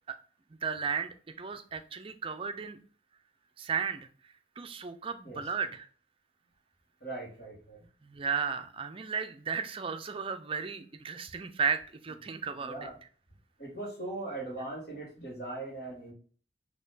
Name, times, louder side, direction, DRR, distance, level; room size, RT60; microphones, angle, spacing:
voice 1, 0.6-2.8 3.6-4.1 4.6-5.9 8.0-12.9, right 6 dB, 30° right, 8 dB, 0.4 m, -34 dB
voice 2, 7.0-7.8 12.6-13.0 13.6-16.1, right 2 dB, 55° left, -5 dB, 1.8 m, -40 dB
4.4 x 2.9 x 3.9 m, 0.43 s
head